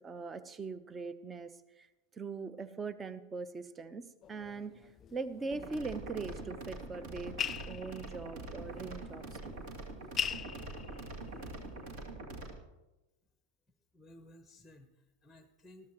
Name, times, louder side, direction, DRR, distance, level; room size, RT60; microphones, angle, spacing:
voice 1, 0.0-1.9 2.1-4.7 5.1-7.4 7.7-9.6, right 4 dB, 20° right, 14 dB, 0.8 m, -41 dB
sound 1, 4.2-12.1, left 7 dB, 25° left, 0.4 m, -43 dB
sound 2, 5.5-12.5, right 2 dB, 50° right, 2.5 m, -44 dB
voice 2, 13.9-15.9, left 1 dB, 5° left, 8 dB, 1.0 m, -57 dB
21.0 x 13.5 x 3.1 m, 1.0 s
figure-of-eight pair, 90°, 0 cm